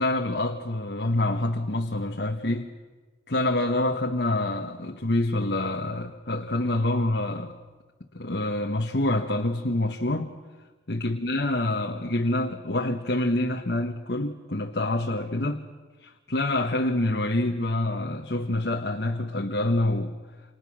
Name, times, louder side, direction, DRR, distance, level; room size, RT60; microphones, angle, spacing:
voice 1, 0.0-2.7 3.3-7.6 8.1-10.3 10.9-15.6 16.0-20.2, left 1 dB, 65° left, 1.5 m, -26 dB
29.0 x 27.5 x 6.4 m
head